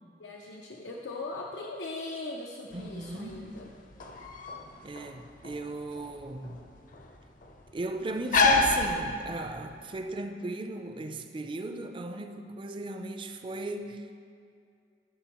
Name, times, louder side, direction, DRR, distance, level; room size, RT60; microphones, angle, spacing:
voice 1, 0.2-3.7, left 2 dB, 85° left, -1 dB, 0.6 m, -39 dB
sound 1, 2.7-9.7, left 3 dB, 50° left, 0.7 m, -30 dB
voice 2, 2.7-3.6 4.8-6.6 7.7-14.1, right 2 dB, 30° right, 7 dB, 0.4 m, -37 dB
14.0 x 6.2 x 3.0 m, 2.4 s
head